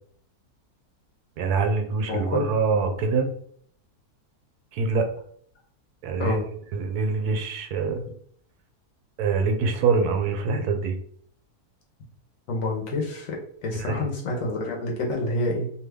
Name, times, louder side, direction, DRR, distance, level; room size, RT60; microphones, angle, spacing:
voice 1, 1.4-3.3 4.7-5.1 6.0-6.4 6.7-8.0 9.2-11.0 13.8-14.1, right 4 dB, 80° right, 5 dB, 1.1 m, -24 dB
voice 2, 2.1-2.4 6.2-6.4 12.5-15.7, left 2 dB, 65° left, -1 dB, 1.1 m, -28 dB
2.8 x 2.3 x 3.4 m, 0.62 s
omnidirectional pair, 1.7 m